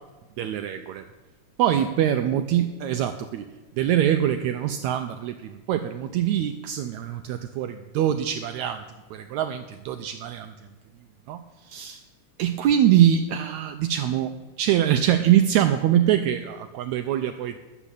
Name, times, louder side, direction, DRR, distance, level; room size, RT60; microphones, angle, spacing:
voice 1, 0.4-1.0 1.6-3.4 3.8-8.8 9.1-10.5 11.3-12.0 12.4-14.3 14.6-17.6, right 11 dB, 85° right, 8 dB, 1.6 m, -23 dB
12.0 x 7.1 x 8.3 m, 1.2 s
omnidirectional pair, 3.8 m